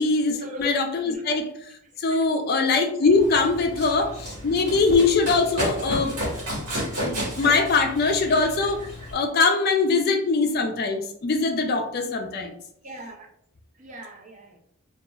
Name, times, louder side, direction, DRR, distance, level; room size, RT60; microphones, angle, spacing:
voice 1, 0.0-1.7 2.0-6.1 7.0-8.8 9.1-12.5, left 4 dB, 45° left, 0.3 m, -22 dB
voice 2, 1.1-1.4 1.8-2.2 3.0-3.2 12.8-13.3 13.7-14.6, right 2 dB, 35° right, 0.4 m, -40 dB
Run, 3.1-9.1, equal, 90° right, 1.2 m, -32 dB
2.9 x 2.3 x 2.2 m
head